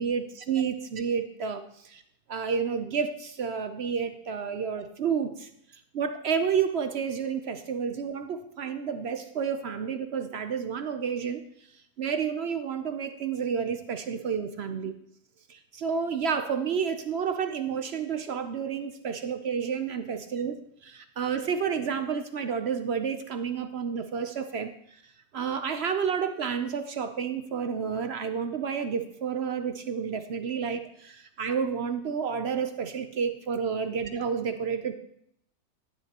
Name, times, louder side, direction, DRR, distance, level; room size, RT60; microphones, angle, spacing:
voice 1, 0.0-2.0 2.3-5.5 5.9-11.4 12.0-15.0 15.5-24.7 25.3-34.9, right 6 dB, 60° right, 8 dB, 0.7 m, -30 dB
12.5 x 10.5 x 2.9 m, 0.72 s
omnidirectional pair, 1.7 m